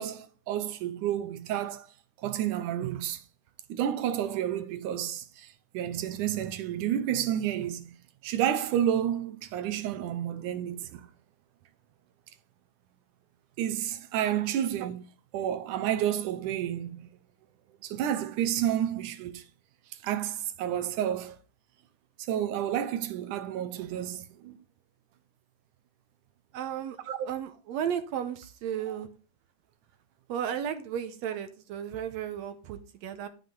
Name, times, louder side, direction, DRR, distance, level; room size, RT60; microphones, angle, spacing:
voice 1, 0.0-1.9 2.2-3.2 3.7-5.5 5.7-8.0 8.2-11.0 13.6-15.0 15.3-17.1 17.8-19.4 20.0-21.4 22.3-24.6 27.1-27.2, right 10 dB, 90° right, 2.5 m, -30 dB
voice 2, 26.5-27.0 27.2-29.1 30.3-33.3, right 9 dB, 70° right, 2.0 m, -34 dB
12.5 x 5.7 x 3.8 m
omnidirectional pair, 3.5 m